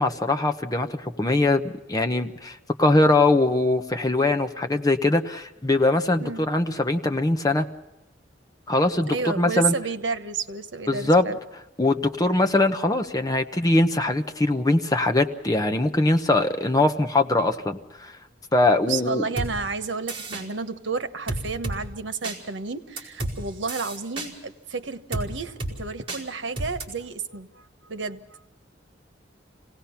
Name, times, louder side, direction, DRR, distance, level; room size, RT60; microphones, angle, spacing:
voice 1, 0.0-7.7 8.7-9.7 10.9-11.3 11.8-18.1 18.5-19.2, left 2 dB, 20° left, 5 dB, 1.0 m, -22 dB
voice 2, 9.1-11.4 18.9-28.5, right 4 dB, 85° right, 10 dB, 1.2 m, -31 dB
sound 1, 19.4-19.5 20.1-20.4 21.3-21.8 22.2-22.4 23.0-23.3 23.7-24.3 25.1-25.3 25.6-25.7 26.1-26.2 26.6-26.8, right 2 dB, 30° right, 5.0 m, -30 dB
26.5 x 18.0 x 5.8 m, 0.91 s
head